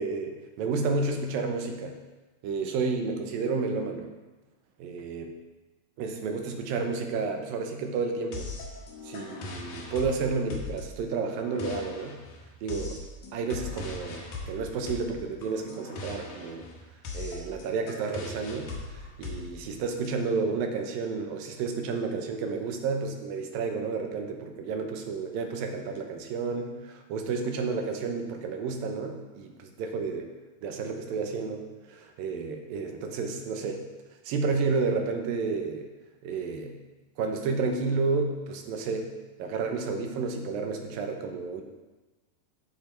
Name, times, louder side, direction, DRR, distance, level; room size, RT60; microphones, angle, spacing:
voice 1, 0.0-2.0 2.4-4.1 4.8-5.4 6.0-8.5 9.0-12.2 12.6-13.0 13.3-16.7 17.1-30.3 30.6-33.8 34.3-35.9 36.2-36.8 37.2-39.1 39.4-41.6, right 4 dB, 90° right, 4 dB, 2.8 m, -31 dB
sound 1, 8.3-20.1, left 3 dB, 90° left, 3.3 m, -40 dB
14.5 x 5.6 x 4.4 m, 1.2 s
omnidirectional pair, 3.9 m